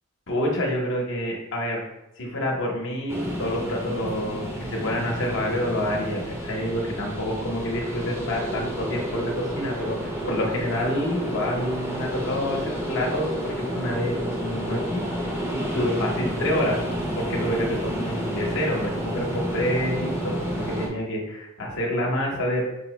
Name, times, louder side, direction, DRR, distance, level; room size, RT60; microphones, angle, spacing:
voice 1, 0.3-1.8 2.2-14.2 14.4-16.8 17.1-22.6, equal, 60° left, -1 dB, 0.8 m, -28 dB
sound 1, 3.1-20.9, equal, 10° right, 0.5 m, -30 dB
5.1 x 2.0 x 3.0 m, 0.90 s
head